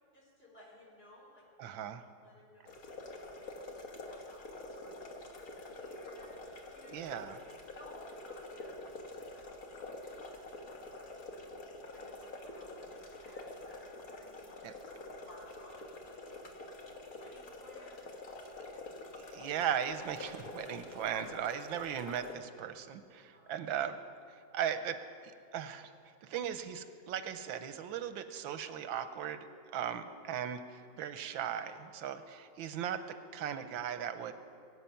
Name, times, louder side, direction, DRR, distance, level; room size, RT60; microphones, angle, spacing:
voice 1, 0.1-1.7 2.2-2.7 2.9-7.0 7.8-14.7 15.3-18.4 23.3-23.6, left 1 dB, 30° left, -3 dB, 3.9 m, -60 dB
voice 2, 1.6-2.0 6.9-7.3 14.6-14.7 19.2-24.0 24.5-25.0 25.5-25.9 26.2-29.5 29.7-34.3, right 9 dB, 90° right, 10 dB, 1.5 m, -37 dB
sound 1, 2.7-22.3, left 2 dB, 50° left, 1.7 m, -47 dB
22.5 x 8.3 x 5.7 m, 2.6 s
omnidirectional pair, 2.1 m